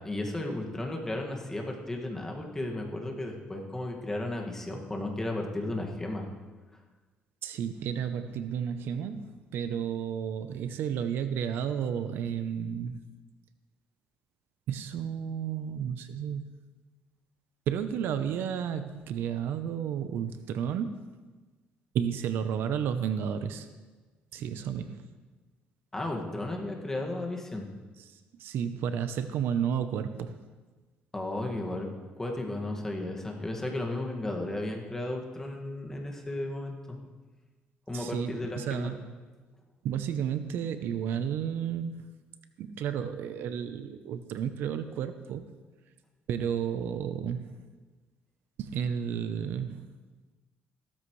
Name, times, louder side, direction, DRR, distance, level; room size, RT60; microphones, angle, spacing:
voice 1, 0.0-6.3 25.9-27.7 31.1-31.9 32.2-37.0 37.9-38.9, left 1 dB, 15° left, 1 dB, 1.9 m, -34 dB
voice 2, 7.4-13.0 14.7-16.4 17.7-21.0 21.9-23.7 24.3-25.1 28.4-30.4 37.9-39.0 39.8-42.0 42.6-45.4 46.3-47.5 48.6-50.0, right 8 dB, 70° right, 10 dB, 0.7 m, -32 dB
16.0 x 13.0 x 3.2 m, 1.3 s
cardioid pair, 120°, 4 cm